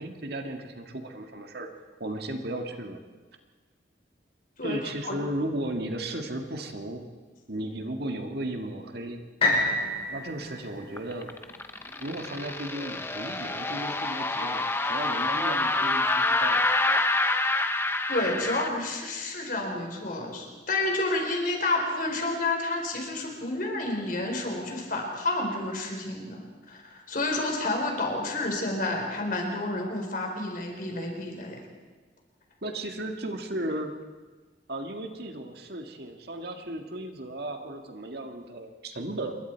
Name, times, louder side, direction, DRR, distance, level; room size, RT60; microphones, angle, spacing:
voice 1, 0.0-1.7 2.0-3.0 4.6-7.1 7.5-9.2 10.1-11.3 12.0-16.6 32.6-33.9 34.7-39.4, right 1 dB, 55° right, 4 dB, 1.9 m, -35 dB
voice 2, 4.6-5.2 18.1-31.6, left 2 dB, 45° left, 2 dB, 4.3 m, -30 dB
sound 1, 9.4-13.3 13.9-14.0, left 2 dB, 30° left, 5.8 m, -30 dB
sound 2, 11.0-18.7, left 2 dB, 15° left, 0.9 m, -27 dB
27.5 x 22.0 x 4.6 m, 1.3 s
head